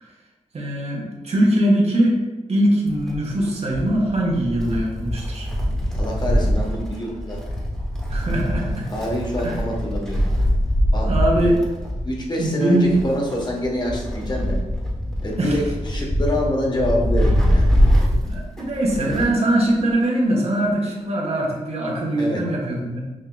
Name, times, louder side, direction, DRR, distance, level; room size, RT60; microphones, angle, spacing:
voice 1, 0.5-2.2 2.5-5.5 8.1-8.9 9.4-9.6 11.1-11.6 12.4-12.9 15.4-15.6 18.3-23.0, right 1 dB, 50° right, -2 dB, 1.0 m, -21 dB
Wind, 2.9-19.5 19.8-19.9 20.9-21.0, equal, 5° left, 1.1 m, -23 dB
voice 2, 6.0-7.4 8.9-10.2 10.9-11.1 11.4-11.5 12.0-14.6 15.2-17.7 22.2-22.4, left 1 dB, 35° left, -2 dB, 1.1 m, -26 dB
6.2 x 2.8 x 2.3 m, 1.2 s
cardioid pair, 80°, 13 cm